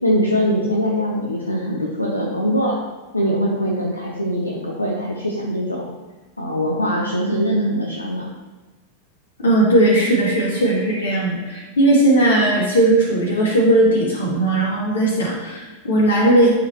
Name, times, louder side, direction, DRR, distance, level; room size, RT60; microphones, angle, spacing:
voice 1, 0.0-2.8 3.1-5.9 6.4-8.3, equal, 85° left, -1 dB, 0.9 m, -22 dB
voice 2, 9.4-16.5, right 1 dB, 65° left, -4 dB, 2.6 m, -17 dB
12.0 x 5.3 x 3.0 m, 1.2 s
figure-of-eight pair, 90°, 0 cm